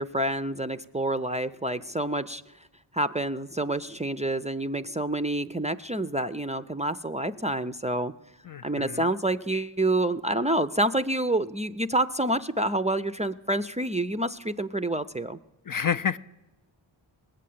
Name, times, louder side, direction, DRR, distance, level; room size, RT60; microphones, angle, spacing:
voice 1, 0.0-2.4 2.9-8.1 8.6-15.4, right 1 dB, 15° right, 0.4 m, -28 dB
voice 2, 8.5-9.1 15.7-16.2, left 7 dB, 45° left, 0.5 m, -29 dB
19.0 x 7.6 x 8.5 m
cardioid pair, 50°, 48 cm